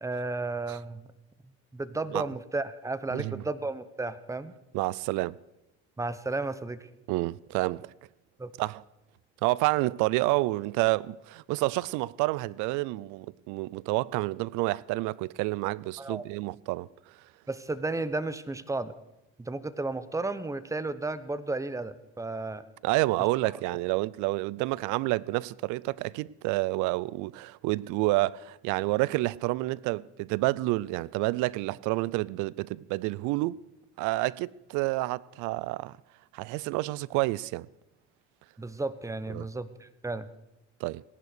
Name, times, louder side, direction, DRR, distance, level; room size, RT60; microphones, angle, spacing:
voice 1, 0.0-1.1 1.7-4.5 6.0-6.9 8.4-8.5 16.0-16.2 17.5-18.9 19.4-22.6 23.4-23.5 38.6-40.3, right 3 dB, 10° right, 0.9 m, -33 dB
voice 2, 3.1-3.4 4.7-5.4 7.1-7.9 8.6-8.8 9.4-16.9 22.8-33.6 34.0-35.9 36.3-37.7 39.3-39.5 40.8-41.0, right 20 dB, 80° right, 0.5 m, -29 dB
18.0 x 11.0 x 6.7 m
cardioid pair, 100°, 30 cm